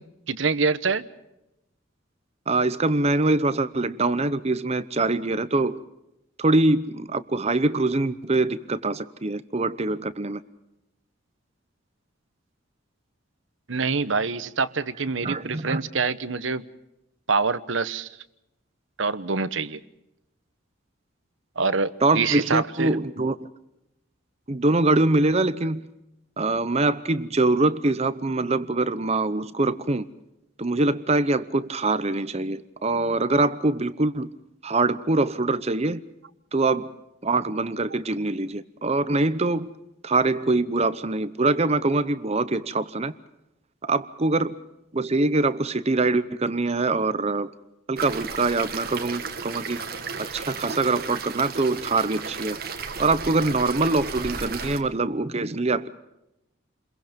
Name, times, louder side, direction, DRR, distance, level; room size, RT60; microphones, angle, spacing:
voice 1, 0.3-1.1 13.7-16.6 17.3-18.1 19.0-19.8 21.6-23.0, right 4 dB, 70° right, 1.1 m, -25 dB
voice 2, 2.5-5.8 6.4-10.4 15.2-15.8 22.0-23.4 24.5-25.8 26.4-30.0 30.6-34.3 34.6-36.0 36.5-36.9 37.2-39.7 40.0-43.1 43.9-44.6 44.9-47.5 47.9-49.8 50.3-52.6 53.0-55.9, right 2 dB, 30° right, 0.8 m, -24 dB
sound 1, 48.0-54.8, right 5 dB, 50° right, 2.1 m, -34 dB
29.5 x 22.0 x 5.2 m
head